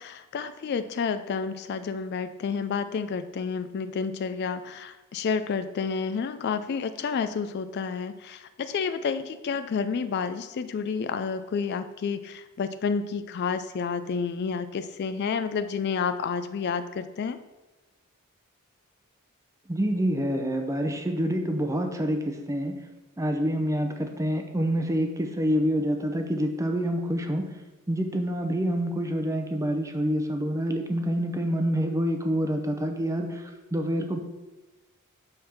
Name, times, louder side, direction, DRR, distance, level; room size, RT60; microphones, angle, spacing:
voice 1, 0.0-17.4, left 5 dB, 50° left, 11 dB, 0.3 m, -30 dB
voice 2, 19.7-22.7 23.2-27.5 27.9-34.2, equal, 15° right, 5 dB, 0.6 m, -27 dB
5.7 x 4.3 x 6.4 m, 1.1 s
head